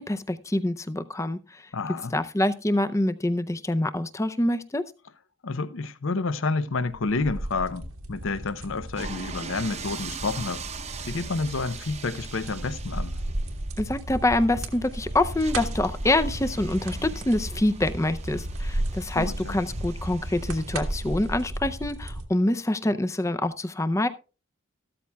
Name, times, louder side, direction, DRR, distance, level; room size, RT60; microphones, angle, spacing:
voice 1, 0.0-1.6 2.1-4.8 13.8-24.1, left 1 dB, 15° left, 0.5 m, -26 dB
voice 2, 1.7-2.1 5.4-10.6 11.1-13.2 19.1-19.6, left 3 dB, 65° left, 0.7 m, -29 dB
sound 1, 6.8-22.3, right 1 dB, 85° right, 1.5 m, -34 dB
sound 2, 9.0-21.5, right 5 dB, 30° right, 0.8 m, -42 dB
14.0 x 13.0 x 2.3 m
head